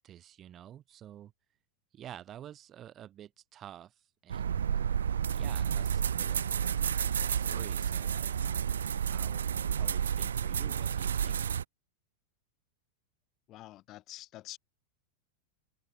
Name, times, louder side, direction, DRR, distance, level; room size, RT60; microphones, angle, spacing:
voice 1, 0.0-1.3 1.9-4.7 5.3-8.8 9.1-11.4, right 11 dB, 30° right, 1.5 m, -50 dB
sound 1, 4.3-11.6, right 8 dB, 65° right, 0.6 m, -31 dB
voice 2, 13.5-14.6, left 15 dB, 35° left, 1.4 m, -47 dB
open air
figure-of-eight pair, 90°, 0 cm